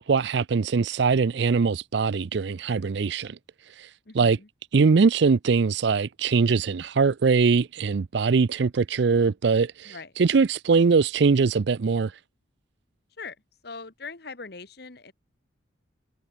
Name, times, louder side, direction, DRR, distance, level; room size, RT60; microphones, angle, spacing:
voice 1, 0.0-3.4 3.8-3.9 4.1-4.4 4.7-12.1, right 5 dB, 60° right, 0.4 m, -22 dB
voice 2, 4.1-4.5 9.8-10.1 13.2-13.4 13.6-15.1, left 4 dB, 55° left, 1.4 m, -41 dB
head